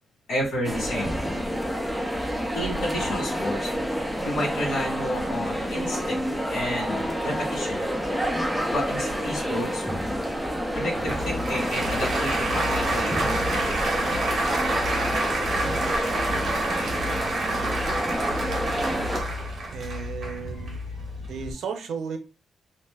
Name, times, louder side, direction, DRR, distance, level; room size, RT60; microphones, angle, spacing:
voice 1, 0.3-1.2 2.5-3.7 4.2-7.9 8.7-9.9 10.7-13.6 20.6-20.7, equal, 75° left, -4 dB, 1.3 m, -31 dB
sound 1, 0.6-19.2, equal, ahead, 0.4 m, -29 dB
sound 2, 2.3-3.8 4.1-4.2 4.7-9.1 9.6-9.7 10.5-10.6 10.8-10.9, equal, 20° left, 0.7 m, -44 dB
Applause, 10.9-21.5, right 1 dB, 50° right, 0.9 m, -28 dB
voice 2, 17.4-17.9 19.7-20.8 21.2-22.2, right 6 dB, 85° right, 6 dB, 0.5 m, -35 dB
2.5 x 2.1 x 3.3 m, 0.32 s
wide cardioid pair, 175°, 0 cm